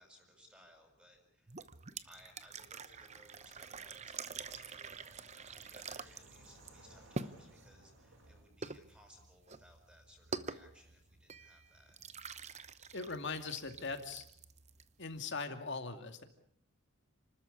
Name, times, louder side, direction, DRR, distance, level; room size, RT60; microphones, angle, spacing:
voice 1, 0.0-1.7 2.0-12.0, equal, 5° right, 3 dB, 6.2 m, -63 dB
sound 1, 1.5-15.2, right 4 dB, 30° right, 0.9 m, -47 dB
sound 2, 3.0-8.4, right 1 dB, 65° right, 6.9 m, -62 dB
voice 2, 12.9-14.2 15.0-16.2, left 4 dB, 55° left, 7 dB, 2.4 m, -40 dB
30.0 x 13.5 x 8.6 m, 0.71 s
head